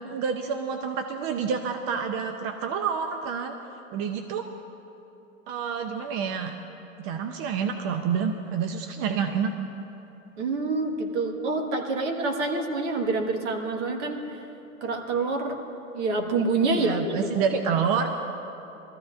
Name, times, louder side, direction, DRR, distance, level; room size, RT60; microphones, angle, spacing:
voice 1, 0.0-3.6 3.9-4.5 5.5-6.5 7.0-9.5 16.6-18.1, right 6 dB, 35° right, 6 dB, 0.6 m, -28 dB
voice 2, 10.4-14.2 14.8-15.6 15.9-17.2, right 3 dB, 60° right, 3 dB, 1.8 m, -27 dB
20.5 x 14.0 x 2.6 m, 2.9 s
hypercardioid pair, 120°, 40 cm